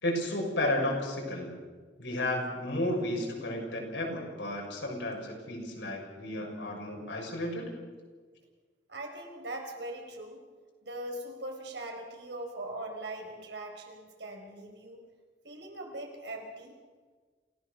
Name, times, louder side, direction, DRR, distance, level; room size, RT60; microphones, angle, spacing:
voice 1, 0.0-1.5 2.0-7.7, left 1 dB, 85° left, 0 dB, 6.3 m, -33 dB
voice 2, 8.9-10.4 10.8-15.0 15.4-16.7, right 1 dB, 75° right, 2 dB, 4.9 m, -41 dB
28.0 x 16.5 x 6.7 m, 1.5 s
head